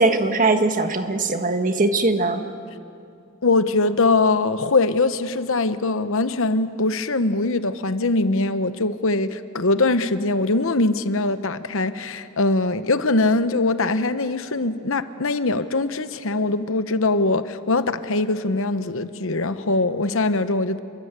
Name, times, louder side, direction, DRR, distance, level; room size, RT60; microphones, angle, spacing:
voice 1, 0.0-2.4, right 2 dB, 40° right, 7 dB, 1.6 m, -20 dB
voice 2, 3.4-20.8, left 2 dB, 65° left, 11 dB, 1.0 m, -22 dB
28.0 x 23.5 x 8.2 m, 2.5 s
head